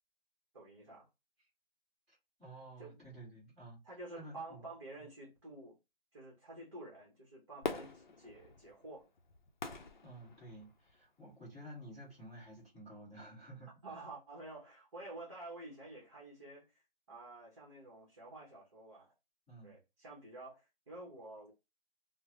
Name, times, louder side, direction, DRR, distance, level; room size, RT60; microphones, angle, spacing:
voice 1, 0.5-1.1 2.8-3.0 3.8-5.8 6.1-9.1 13.8-16.6 17.1-19.1 19.6-21.5, right 2 dB, 30° right, 0.9 m, -50 dB
voice 2, 2.1-4.7 10.0-13.7 19.5-19.7, right 1 dB, ahead, 0.9 m, -52 dB
Fireworks, 7.6-11.0 11.5-11.6, left 4 dB, 50° left, 0.6 m, -44 dB
3.4 x 2.0 x 3.0 m
hypercardioid pair, 165°, 30 cm